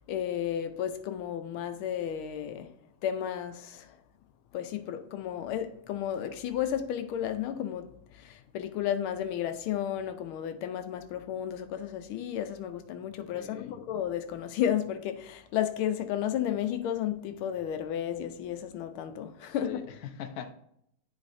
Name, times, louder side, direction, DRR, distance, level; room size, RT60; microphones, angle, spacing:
voice 1, 0.1-2.7 3.0-4.0 4.5-19.9, left 10 dB, 85° left, 1.5 m, -33 dB
voice 2, 13.3-13.8 19.5-20.5, left 8 dB, 65° left, 0.9 m, -42 dB
10.5 x 4.0 x 2.6 m
omnidirectional pair, 2.3 m